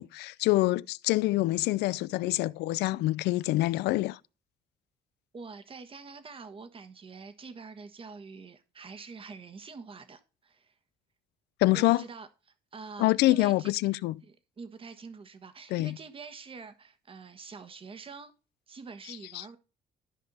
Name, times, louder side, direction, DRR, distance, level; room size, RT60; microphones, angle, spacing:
voice 1, 0.0-4.2 11.6-12.0 13.0-14.1 15.7-15.9 19.3-19.4, left 18 dB, 80° left, 0.5 m, -26 dB
voice 2, 5.3-10.8 11.7-12.3 12.7-18.3 18.7-19.6, right 4 dB, 30° right, 1.5 m, -46 dB
13.0 x 5.5 x 4.1 m
cardioid pair, 110°, 17 cm